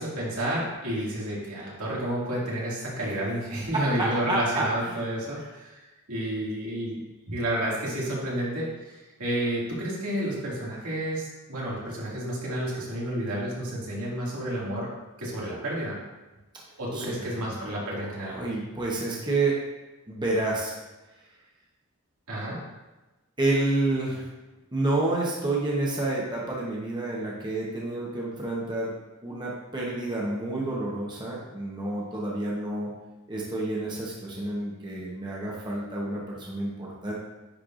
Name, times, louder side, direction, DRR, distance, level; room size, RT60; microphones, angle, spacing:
voice 1, 0.0-5.8 6.1-7.0 7.3-14.9 15.2-16.0 16.8-18.4 22.3-22.6, right 1 dB, 85° right, -6 dB, 2.2 m, -30 dB
voice 2, 3.8-5.0 16.9-19.6 20.1-20.7 23.4-24.2 24.7-28.9 29.2-32.9 33.3-37.1, right 2 dB, 20° right, -4 dB, 1.0 m, -29 dB
9.8 x 4.5 x 2.5 m, 1.1 s
head